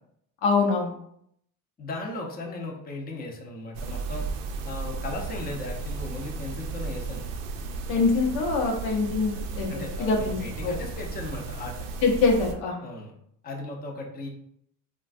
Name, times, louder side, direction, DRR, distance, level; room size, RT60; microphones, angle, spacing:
voice 1, 0.4-0.9 7.9-9.7 10.0-10.4 10.6-10.7 12.0-12.8, left 4 dB, 80° left, 1 dB, 0.8 m, -24 dB
voice 2, 1.8-4.2 4.6-7.2 9.7-11.8 12.8-13.1 13.4-14.3, left 2 dB, 25° left, 1 dB, 0.5 m, -36 dB
sound 1, 3.7-12.5, right 3 dB, 85° right, 0.5 m, -34 dB
3.1 x 2.3 x 2.5 m, 0.73 s
supercardioid pair, 95°, 39 cm